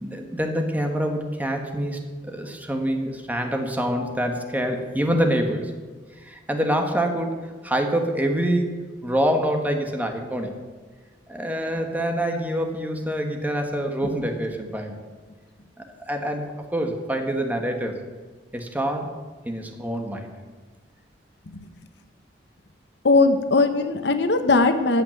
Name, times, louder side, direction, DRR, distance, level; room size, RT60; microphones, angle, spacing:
voice 1, 0.0-5.7 6.2-10.5 11.3-15.0 15.8-17.9 18.5-19.1 19.4-20.3, right 1 dB, 10° right, 4 dB, 1.4 m, -26 dB
voice 2, 23.0-25.0, left 3 dB, 65° left, 8 dB, 0.9 m, -19 dB
14.5 x 5.8 x 9.1 m, 1.4 s
head